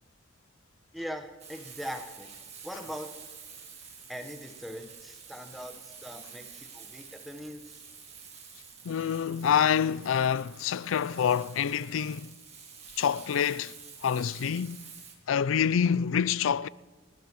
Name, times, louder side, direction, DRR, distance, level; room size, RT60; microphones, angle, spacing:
voice 1, 0.9-3.1 4.1-7.8, equal, ahead, 1.2 m, -41 dB
Frying (food), 1.4-15.1, right 6 dB, 35° right, 2.1 m, -49 dB
voice 2, 8.8-12.3 13.0-13.7 14.0-14.8 15.3-16.7, left 8 dB, 85° left, 0.4 m, -27 dB
28.5 x 12.5 x 3.2 m
head